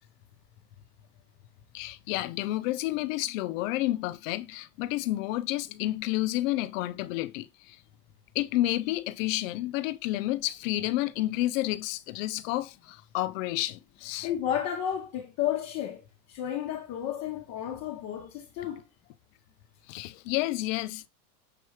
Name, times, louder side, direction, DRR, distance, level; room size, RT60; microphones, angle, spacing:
voice 1, 1.7-7.8 8.3-14.3 19.9-21.1, left 16 dB, 55° left, 0.6 m, -30 dB
voice 2, 14.2-18.8, left 10 dB, 35° left, 0.9 m, -32 dB
6.8 x 3.0 x 4.7 m
supercardioid pair, 135°, 48 cm